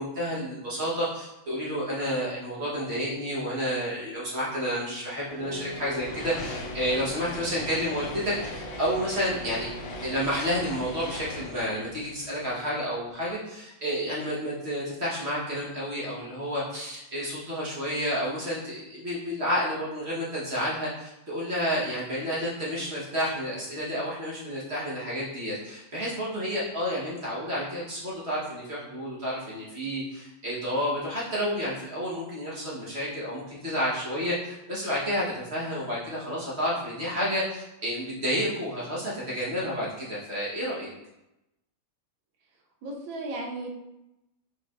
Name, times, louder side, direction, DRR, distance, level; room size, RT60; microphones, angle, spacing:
voice 1, 0.0-9.7 10.0-40.9, equal, 45° right, -7 dB, 0.8 m, -30 dB
sound 1, 5.3-10.3, right 2 dB, 85° right, 0.9 m, -42 dB
sound 2, 5.5-13.0, left 2 dB, 70° left, 0.9 m, -40 dB
voice 2, 42.8-43.7, right 2 dB, 70° right, 1 dB, 1.4 m, -35 dB
4.6 x 4.2 x 2.3 m, 0.91 s
omnidirectional pair, 2.4 m